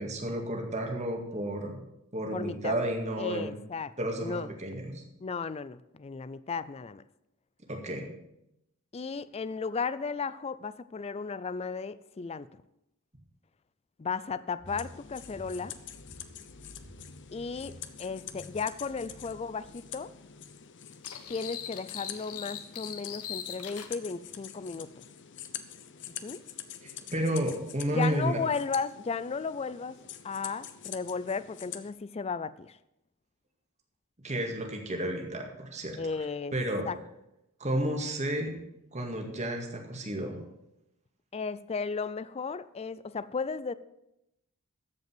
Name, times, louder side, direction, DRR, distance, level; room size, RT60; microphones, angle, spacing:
voice 1, 0.0-1.8 2.1-3.5 4.0-5.0 7.7-8.1 26.8-28.4 34.2-36.0 36.5-36.9 37.6-38.5 38.9-40.4, right 1 dB, 30° right, 2 dB, 2.1 m, -32 dB
voice 2, 2.3-2.7 3.2-3.9 4.2-4.5 5.2-7.0 8.9-12.5 14.0-15.8 17.3-20.1 21.3-24.9 26.2-26.4 27.9-30.0 30.2-32.8 36.0-36.6 36.8-37.0 41.3-43.7, left 5 dB, 25° left, 16 dB, 0.4 m, -35 dB
sound 1, 14.6-20.5, equal, 50° right, 5.2 m, -53 dB
sound 2, 14.7-31.9, left 9 dB, 55° left, 0.8 m, -46 dB
sound 3, 21.0-23.9, left 9 dB, 75° left, 1.1 m, -40 dB
14.0 x 5.4 x 7.8 m, 0.85 s
head